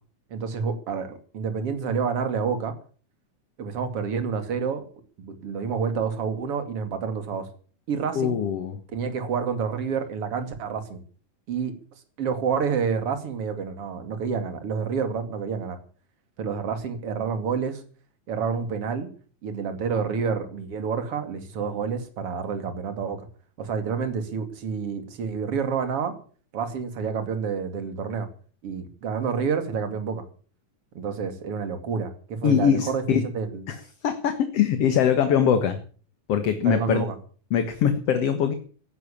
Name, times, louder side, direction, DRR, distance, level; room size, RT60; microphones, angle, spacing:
voice 1, 0.3-2.7 3.6-4.8 5.2-7.4 7.9-8.4 8.9-11.0 11.5-11.7 12.2-15.8 16.4-17.8 18.3-19.1 19.4-23.2 23.6-26.1 26.5-28.3 28.6-30.2 30.9-33.6 36.6-37.1, right 6 dB, 45° right, 8 dB, 3.3 m, -28 dB
voice 2, 8.1-8.8 32.4-33.3 33.7-35.8 36.3-37.0 37.5-38.5, left 8 dB, 55° left, 8 dB, 2.2 m, -22 dB
17.0 x 11.0 x 7.3 m, 0.42 s
omnidirectional pair, 3.7 m